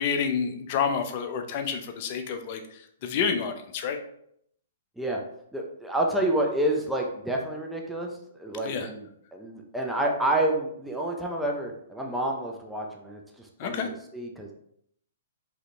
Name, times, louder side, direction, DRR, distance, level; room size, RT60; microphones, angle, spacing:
voice 1, 0.0-2.6 3.0-4.0 8.6-8.9 13.6-13.9, left 6 dB, 45° left, 6 dB, 0.7 m, -28 dB
voice 2, 5.5-8.1 8.4-14.5, right 1 dB, 5° right, -1 dB, 0.7 m, -29 dB
4.9 x 3.0 x 3.3 m, 0.70 s
hypercardioid pair, 125°, 0 cm